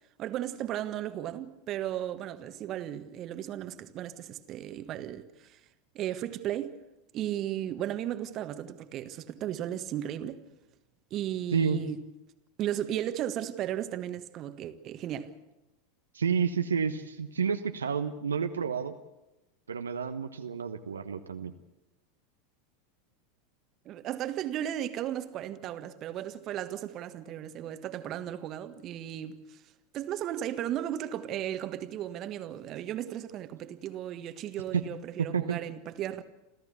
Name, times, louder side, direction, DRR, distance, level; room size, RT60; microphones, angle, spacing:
voice 1, 0.2-5.6 5.9-6.8 7.1-10.4 11.1-12.0 12.6-15.3 23.8-29.6 29.9-36.2, right 11 dB, 40° right, 1.5 m, -35 dB
voice 2, 16.1-18.9 19.7-21.5 34.7-34.8 35.2-35.6, right 6 dB, 75° right, 1.0 m, -30 dB
28.5 x 14.0 x 8.4 m
figure-of-eight pair, 85°, 0 cm